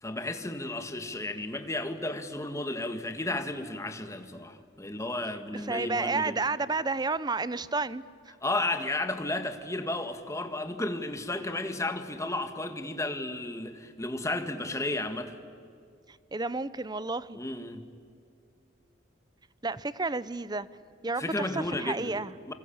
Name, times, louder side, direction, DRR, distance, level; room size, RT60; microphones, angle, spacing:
voice 1, 0.0-6.4 8.4-15.3 17.3-17.8 21.2-22.2 22.5-22.6, left 2 dB, 15° left, 1.8 m, -33 dB
voice 2, 5.5-8.0 16.3-17.4 19.6-20.7 21.0-22.3, right 3 dB, 20° right, 0.7 m, -31 dB
27.5 x 25.0 x 8.7 m
head